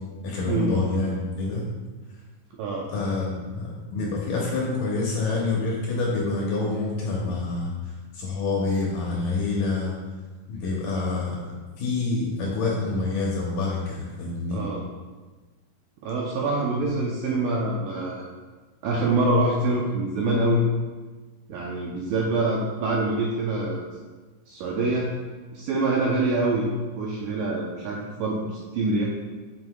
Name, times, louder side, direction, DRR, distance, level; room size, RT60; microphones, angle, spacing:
voice 1, 0.2-1.7 2.9-7.7 8.1-10.0 10.5-11.4 11.8-14.6, left 3 dB, 70° left, -3 dB, 2.1 m, -27 dB
voice 2, 2.5-2.9 14.5-14.8 16.0-18.2 18.8-20.6 21.5-23.9 24.5-25.1 25.5-26.7 27.0-29.1, right 2 dB, 85° right, -2 dB, 2.0 m, -25 dB
7.8 x 5.3 x 2.3 m, 1.3 s
omnidirectional pair, 4.5 m